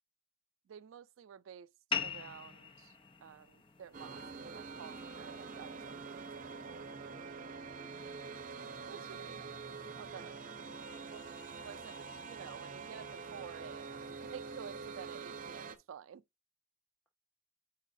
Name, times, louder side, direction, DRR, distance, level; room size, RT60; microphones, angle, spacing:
voice 1, 0.7-1.7 2.0-3.0 3.2-6.8 8.9-9.4 10.0-10.3 11.1-11.2 11.6-16.2, right 8 dB, 80° right, 0.3 m, -51 dB
sound 1, 1.9-6.9, left 6 dB, 25° left, 0.5 m, -43 dB
sound 2, 3.9-15.8, right 4 dB, 45° right, 0.7 m, -46 dB
voice 2, 7.0-7.5 9.2-9.4 9.7-9.8 10.1-10.3 10.9-11.3, equal, 10° left, 1.1 m, -66 dB
8.1 x 4.7 x 2.5 m
head